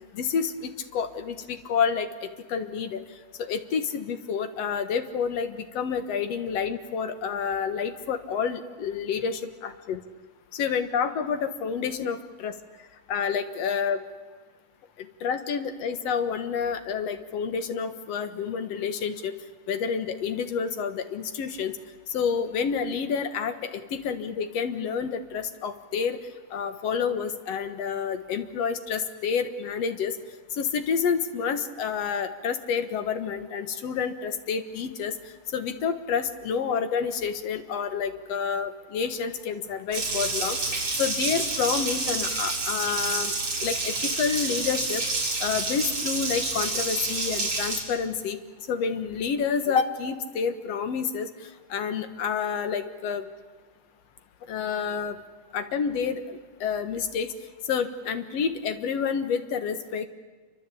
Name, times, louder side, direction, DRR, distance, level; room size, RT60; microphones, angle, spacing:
voice 1, 0.1-3.0 3.4-10.0 10.5-12.5 13.1-14.0 15.0-19.3 19.7-21.7 22.1-26.2 26.5-30.2 30.5-35.2 35.5-40.6 41.0-43.3 43.6-45.0 45.4-48.4 48.7-53.2 54.5-55.2 55.5-57.3 57.7-60.1, left 6 dB, 55° left, 9 dB, 2.2 m, -29 dB
Water tap faucet, 39.9-47.8, right 3 dB, 45° right, 5.6 m, -28 dB
28.5 x 24.5 x 8.5 m, 1.4 s
omnidirectional pair, 4.0 m